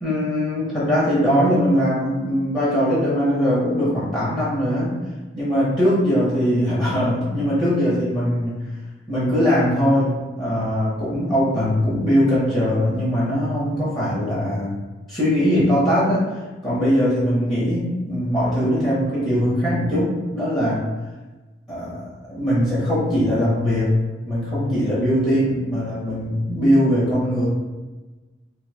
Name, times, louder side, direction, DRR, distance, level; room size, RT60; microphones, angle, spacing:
voice 1, 0.0-4.9 5.3-8.7 9.1-14.8 15.1-16.3 16.6-20.8 21.7-23.9 24.3-27.5, equal, 25° left, -9 dB, 1.0 m, -21 dB
3.3 x 2.7 x 3.2 m, 1.2 s
head